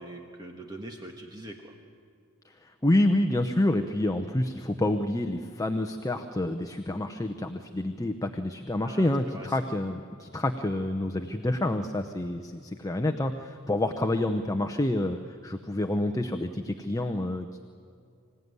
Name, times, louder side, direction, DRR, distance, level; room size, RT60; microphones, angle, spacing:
voice 1, 0.0-1.7 8.8-9.6, right 1 dB, 20° right, 2 dB, 1.4 m, -43 dB
voice 2, 2.4-17.6, left 1 dB, 15° left, 6 dB, 0.8 m, -28 dB
26.0 x 16.5 x 9.6 m, 2.4 s
head